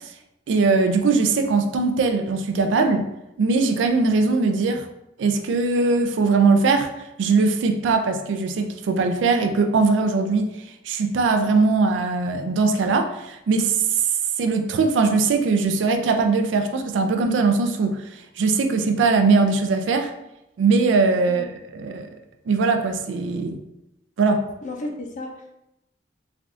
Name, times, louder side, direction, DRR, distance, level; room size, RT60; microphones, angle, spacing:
voice 1, 0.5-3.1 3.4-4.8 5.2-6.9 7.2-10.5 10.9-14.0 14.4-20.1 20.6-21.4 21.7-22.1 22.5-23.6 24.2-24.4, right 4 dB, 90° right, 6 dB, 0.3 m, -20 dB
voice 2, 24.6-25.6, left 2 dB, 45° left, 2 dB, 0.4 m, -33 dB
3.3 x 2.3 x 2.5 m, 0.87 s
head